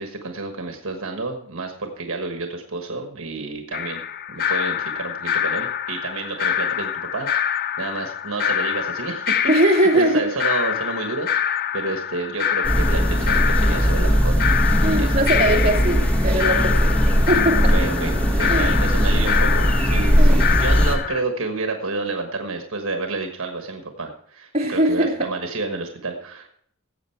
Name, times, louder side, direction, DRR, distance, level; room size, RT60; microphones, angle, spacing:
voice 1, 0.0-4.0 4.3-7.3 7.8-9.4 9.9-14.4 14.9-15.7 17.7-26.5, right 3 dB, 65° right, 4 dB, 1.4 m, -30 dB
sound 1, 3.7-21.2, left 9 dB, 45° left, 0.5 m, -26 dB
voice 2, 9.5-10.3 14.8-17.7 18.5-18.8 20.2-20.5 24.5-25.3, right 1 dB, 30° right, -1 dB, 2.6 m, -21 dB
sound 2, 12.6-20.9, equal, 5° left, 1.5 m, -19 dB
17.0 x 7.8 x 4.5 m, 0.67 s
head